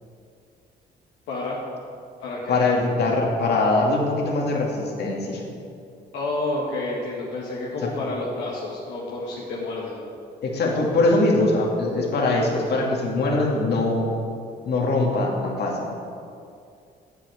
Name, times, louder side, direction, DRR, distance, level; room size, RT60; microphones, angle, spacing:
voice 1, 1.3-1.6 2.2-2.5 6.1-10.0, left 2 dB, 85° left, -5 dB, 1.7 m, -29 dB
voice 2, 2.5-5.4 7.8-7.9 10.4-14.0 14.7-15.8, left 2 dB, 65° left, -1 dB, 2.3 m, -22 dB
8.3 x 7.9 x 7.9 m, 2.4 s
supercardioid pair, 75°, 18 cm